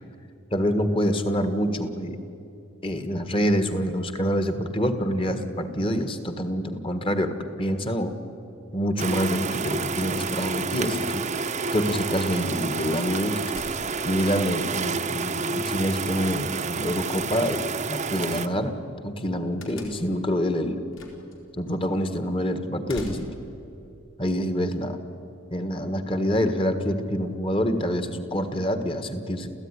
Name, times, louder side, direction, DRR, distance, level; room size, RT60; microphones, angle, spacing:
voice 1, 0.5-2.2 2.8-8.1 8.7-11.2 11.7-13.5 14.0-17.6 17.9-18.8 19.0-20.8 21.6-23.3 24.2-25.0 25.5-29.5, equal, 25° left, 9 dB, 1.6 m, -26 dB
sound 1, 9.0-18.5, right 4 dB, 30° right, 0.9 m, -29 dB
sound 2, 13.5-14.2 17.2-17.9 19.6-20.2 20.9-21.4 21.7-21.8 22.9-23.6, left 1 dB, 60° left, 4.1 m, -43 dB
28.5 x 15.5 x 9.9 m, 2.8 s
head